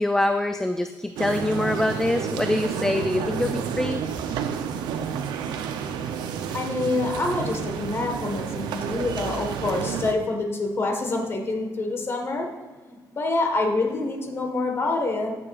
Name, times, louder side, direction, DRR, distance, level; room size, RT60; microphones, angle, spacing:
voice 1, 0.0-4.0, left 1 dB, 5° left, 7 dB, 0.3 m, -24 dB
sound 1, 1.2-10.1, right 7 dB, 85° right, 0.6 m, -30 dB
voice 2, 6.5-12.5 12.9-15.3, left 2 dB, 35° left, 2 dB, 1.5 m, -26 dB
14.0 x 6.8 x 2.5 m, 1.3 s
cardioid pair, 125°, 7 cm